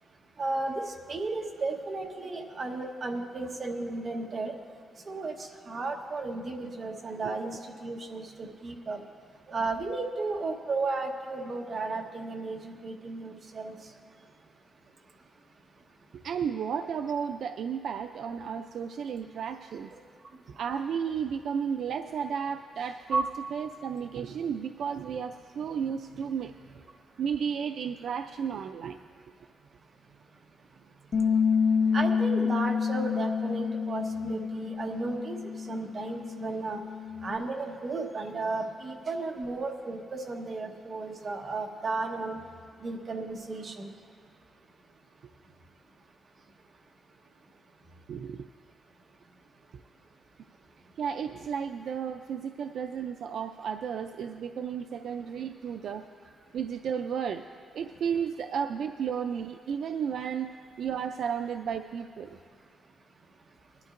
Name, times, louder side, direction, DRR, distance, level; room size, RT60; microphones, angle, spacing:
voice 1, 0.4-4.5 5.1-9.0 9.5-13.7 23.1-23.2 31.9-35.4 35.7-36.8 37.2-42.4 42.8-43.9, right 3 dB, 35° right, 2 dB, 1.1 m, -34 dB
voice 2, 16.1-19.9 20.6-23.2 23.5-26.8 27.2-29.0 48.1-48.5 51.0-56.1 56.5-57.4 57.7-62.4, right 7 dB, 65° right, 7 dB, 0.4 m, -33 dB
Bass guitar, 31.1-37.4, left 6 dB, 45° left, 0.8 m, -28 dB
21.5 x 12.0 x 2.5 m, 2.2 s
wide cardioid pair, 155°, 0 cm